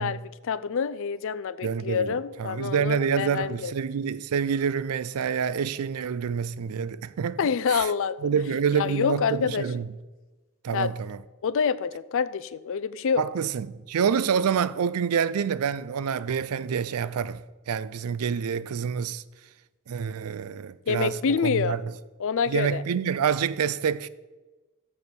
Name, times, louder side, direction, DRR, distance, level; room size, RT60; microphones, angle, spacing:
voice 1, 0.0-3.7 7.4-8.3 8.8-9.7 10.7-10.9 11.4-13.2 20.9-21.8 22.2-22.8, left 6 dB, 60° left, 0.4 m, -27 dB
voice 2, 1.6-7.4 7.7-7.9 8.2-9.9 10.6-11.2 13.2-19.2 19.9-21.8 22.5-24.1, right 7 dB, 75° right, 0.4 m, -27 dB
7.0 x 6.2 x 7.1 m
head